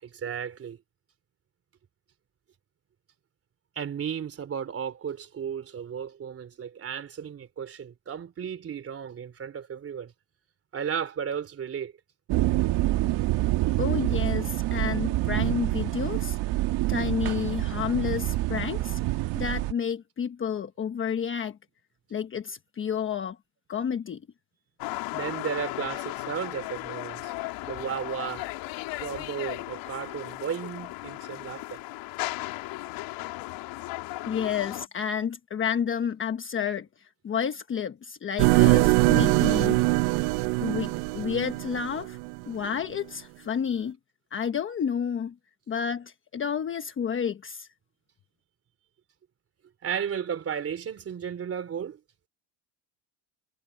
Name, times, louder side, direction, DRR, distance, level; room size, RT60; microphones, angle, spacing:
voice 1, 0.0-0.8 3.8-10.1 10.7-11.9 25.1-27.3 27.6-28.5 29.0-31.8 42.6-42.7 49.8-52.0, right 7 dB, 25° right, 3.6 m, -34 dB
sound 1, 12.3-19.7, right 17 dB, 55° right, 1.6 m, -27 dB
voice 2, 13.8-16.4 16.9-19.0 19.4-21.6 22.1-23.4 23.7-24.2 34.2-39.8 40.6-42.2 42.5-44.0 44.3-45.3 45.7-47.7, left 7 dB, 25° left, 1.2 m, -30 dB
sound 2, 24.8-34.9, left 19 dB, 65° left, 2.9 m, -36 dB
sound 3, 38.4-42.4, right 24 dB, 75° right, 0.7 m, -22 dB
cardioid pair, 150°, 50 cm